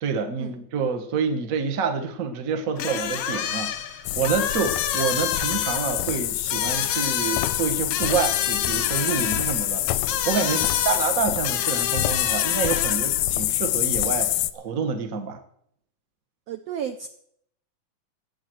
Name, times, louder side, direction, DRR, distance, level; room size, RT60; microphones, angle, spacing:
voice 1, 0.0-15.4, right 5 dB, 65° right, 6 dB, 0.8 m, -28 dB
sound 1, 2.8-13.2, left 9 dB, 70° left, 1.4 m, -30 dB
sound 2, 4.1-14.5, left 15 dB, 90° left, 2.4 m, -26 dB
voice 2, 16.5-17.1, right 9 dB, 90° right, 8 dB, 1.4 m, -33 dB
15.0 x 8.8 x 7.7 m, 0.70 s
omnidirectional pair, 3.9 m